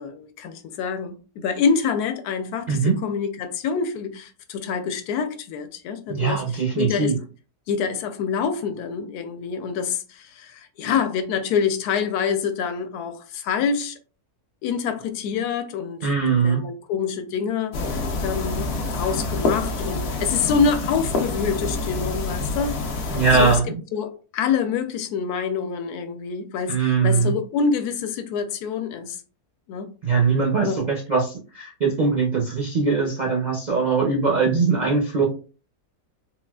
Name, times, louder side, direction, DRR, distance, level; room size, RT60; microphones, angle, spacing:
voice 1, 0.0-7.1 7.7-14.0 14.6-16.1 16.4-22.7 23.3-23.6 23.9-29.2 29.7-29.9 30.6-30.8, left 6 dB, 85° left, 1.1 m, -26 dB
voice 2, 6.1-7.1 16.0-16.6 23.1-23.8 26.7-27.3 30.0-35.3, right 5 dB, 70° right, 0.4 m, -21 dB
sound 1, 17.7-23.6, left 2 dB, 65° left, 0.6 m, -27 dB
3.9 x 2.3 x 2.2 m
omnidirectional pair, 1.6 m